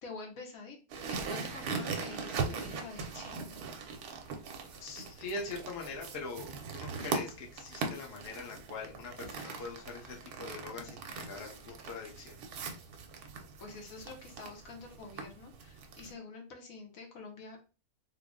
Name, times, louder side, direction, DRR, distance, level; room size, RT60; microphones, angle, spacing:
voice 1, 0.0-0.8 1.1-3.6 13.6-17.6, left 3 dB, 70° left, 1 dB, 1.2 m, -47 dB
sound 1, 0.9-16.1, right 5 dB, 85° right, 1.2 m, -40 dB
voice 2, 4.8-12.4, left 3 dB, 50° left, 0 dB, 0.9 m, -43 dB
3.6 x 2.0 x 3.6 m, 0.34 s
omnidirectional pair, 1.5 m